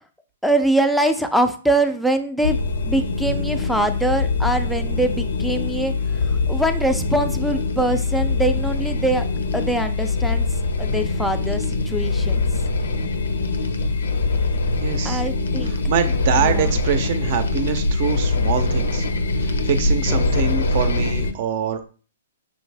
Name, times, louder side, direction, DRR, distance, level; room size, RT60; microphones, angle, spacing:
voice 1, 0.4-9.3 9.5-10.5 10.8-12.4 15.0-15.7 16.4-16.7 20.1-20.3, right 1 dB, ahead, 7 dB, 0.4 m, -23 dB
sound 1, 2.4-21.3, left 3 dB, 85° left, 0.6 m, -23 dB
voice 2, 14.8-15.2 15.6-19.1 19.4-21.9, right 7 dB, 45° right, 10 dB, 0.6 m, -24 dB
5.5 x 2.6 x 3.3 m, 0.39 s
hypercardioid pair, 145°, 0 cm